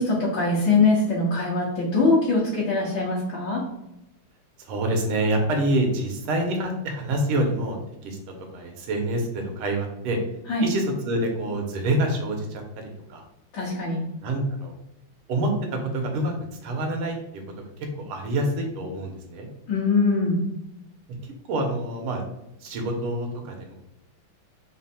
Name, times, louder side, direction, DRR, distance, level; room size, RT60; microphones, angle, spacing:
voice 1, 0.3-3.6 10.5-10.7 13.5-14.0 19.7-20.4, left 3 dB, 60° left, -7 dB, 1.5 m, -22 dB
voice 2, 4.6-10.2 10.6-13.2 14.2-14.7 15.3-16.3 16.6-17.4 18.0-19.5 21.2-22.2 22.6-23.7, right 1 dB, 85° right, 3 dB, 1.7 m, -27 dB
4.3 x 2.0 x 4.2 m, 0.86 s
omnidirectional pair, 2.3 m